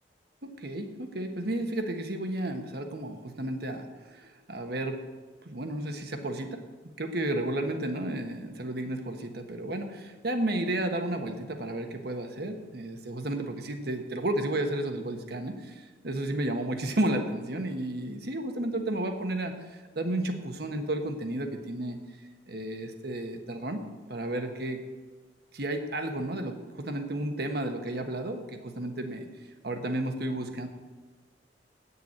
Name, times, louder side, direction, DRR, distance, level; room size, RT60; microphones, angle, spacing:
voice 1, 0.4-5.0 5.4-6.6 7.0-19.5 19.9-22.0 22.5-23.8 24.1-24.8 25.5-29.3 29.6-30.7, right 1 dB, 60° right, 5 dB, 1.3 m, -32 dB
9.2 x 6.9 x 7.9 m, 1.4 s
head